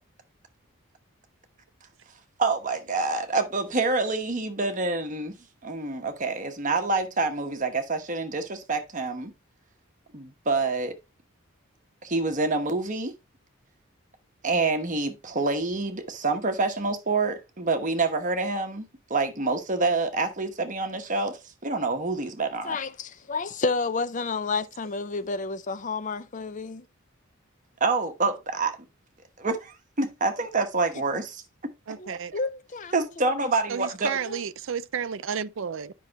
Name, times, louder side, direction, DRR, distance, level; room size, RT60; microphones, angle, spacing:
voice 1, 2.4-5.3 5.6-9.3 10.1-10.9 12.0-13.1 14.4-22.8 27.8-28.8 29.4-31.4 32.1-32.2 32.9-34.2, right 3 dB, 35° right, 1.1 m, -27 dB
voice 2, 22.6-26.9 32.0-33.3 34.3-34.4, left 4 dB, 35° left, 0.5 m, -31 dB
voice 3, 31.9-32.3 33.7-35.9, right 7 dB, 60° right, 0.4 m, -32 dB
10.0 x 5.5 x 2.9 m
head